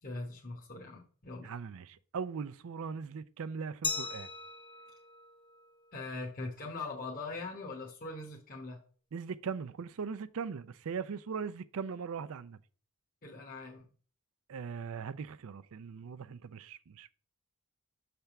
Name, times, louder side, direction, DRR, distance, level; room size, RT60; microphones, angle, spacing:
voice 1, 0.0-1.5 5.9-8.8 13.2-13.9, left 3 dB, 40° left, 1.0 m, -41 dB
voice 2, 1.4-4.3 9.1-12.6 14.5-17.1, right 6 dB, 65° right, 0.4 m, -40 dB
Glass, 3.8-6.6, left 4 dB, 20° left, 0.6 m, -40 dB
6.6 x 3.4 x 5.8 m
head